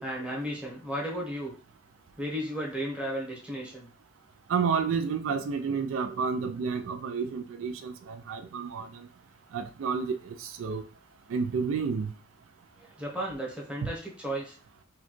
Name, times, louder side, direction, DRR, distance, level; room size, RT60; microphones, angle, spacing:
voice 1, 0.0-1.5 2.2-3.9 12.8-14.6, equal, 5° right, 1.0 m, -34 dB
voice 2, 4.5-9.1 9.5-10.8 11.3-12.1, right 5 dB, 85° right, 0.4 m, -30 dB
4.2 x 2.3 x 3.0 m
head